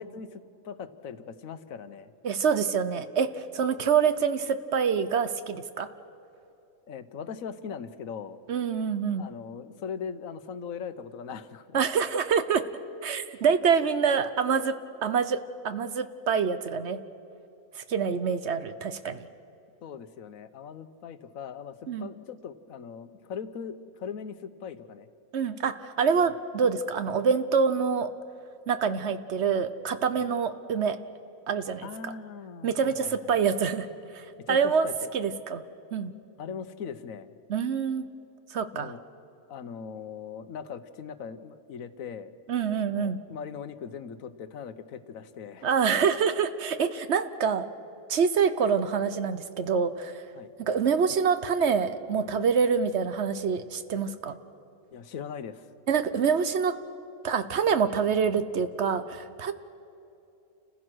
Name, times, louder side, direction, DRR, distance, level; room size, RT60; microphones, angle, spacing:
voice 1, 0.0-2.1 6.9-8.4 9.2-11.8 19.8-25.1 30.1-30.3 31.8-33.1 34.4-35.1 36.4-37.3 38.7-39.0 39.5-42.3 42.9-45.7 50.3-50.5 54.9-55.7, left 6 dB, 75° left, 12 dB, 1.2 m, -40 dB
voice 2, 2.2-5.9 8.5-9.2 11.7-12.6 13.0-14.7 15.0-15.4 15.6-17.0 17.7-19.3 21.9-22.1 25.3-28.1 28.7-31.0 31.5-32.1 32.6-33.9 34.1-34.9 35.1-35.6 35.9-36.1 37.5-38.0 38.5-38.9 42.5-43.2 45.6-47.7 48.1-50.2 50.6-54.4 55.9-56.7 57.2-59.5, right 6 dB, 60° right, 11 dB, 0.9 m, -26 dB
29.0 x 15.5 x 6.2 m, 2.7 s
omnidirectional pair, 1.4 m